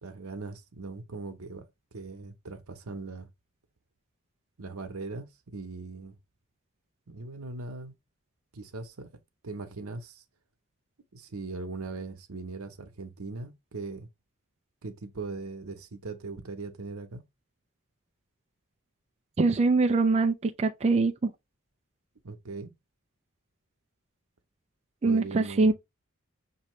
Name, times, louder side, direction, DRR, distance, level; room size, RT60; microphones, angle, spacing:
voice 1, 0.0-1.7 1.9-3.3 4.6-6.2 7.1-7.9 8.5-9.1 9.4-10.2 11.1-14.1 14.8-17.2 22.2-22.7 25.0-25.7, right 3 dB, 75° right, 0.9 m, -39 dB
voice 2, 19.4-21.3 25.0-25.7, right 3 dB, 30° right, 0.4 m, -23 dB
6.2 x 2.7 x 3.1 m
head